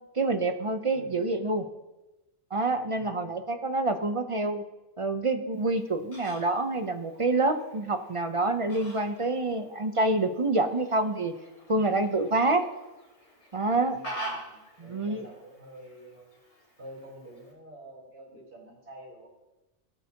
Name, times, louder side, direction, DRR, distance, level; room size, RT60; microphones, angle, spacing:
voice 1, 0.1-1.6 2.5-4.6 5.0-11.3 11.7-12.6 13.5-14.0 14.8-15.3, right 2 dB, 35° right, 8 dB, 0.6 m, -27 dB
voice 2, 0.9-1.3 2.9-3.4 13.7-16.3 16.8-19.3, right 1 dB, 65° right, -7 dB, 4.5 m, -48 dB
Fowl, 5.5-17.5, right 1 dB, 65° left, 3.0 m, -46 dB
18.0 x 8.0 x 2.9 m, 1.0 s
omnidirectional pair, 1.2 m